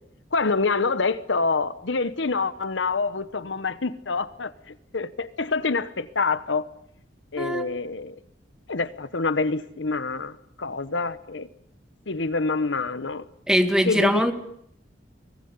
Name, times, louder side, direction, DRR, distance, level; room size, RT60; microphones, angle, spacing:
voice 1, 0.3-6.7 7.3-8.2 8.7-11.5 12.1-13.2 13.8-14.3, left 4 dB, 75° left, 15 dB, 1.1 m, -26 dB
voice 2, 13.5-14.3, equal, 5° right, 7 dB, 2.1 m, -21 dB
24.5 x 19.5 x 9.6 m, 0.72 s
head